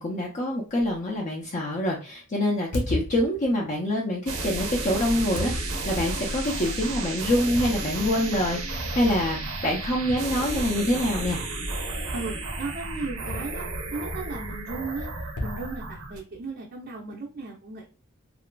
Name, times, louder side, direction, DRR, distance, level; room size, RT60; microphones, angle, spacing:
voice 1, 0.0-11.4, left 1 dB, 35° left, -2 dB, 0.5 m, -26 dB
sound 1, 0.8-1.0 2.7-3.7 5.3-6.2 7.5-8.2 8.6-8.7 10.1-11.0 13.3-14.1 15.4-16.5, left 1 dB, 75° left, 0.8 m, -35 dB
sound 2, 4.3-16.2, right 2 dB, 80° right, 0.7 m, -32 dB
voice 2, 12.1-15.1 15.4-17.9, right 3 dB, 45° right, -1 dB, 0.5 m, -36 dB
2.9 x 2.4 x 2.2 m, 0.37 s
head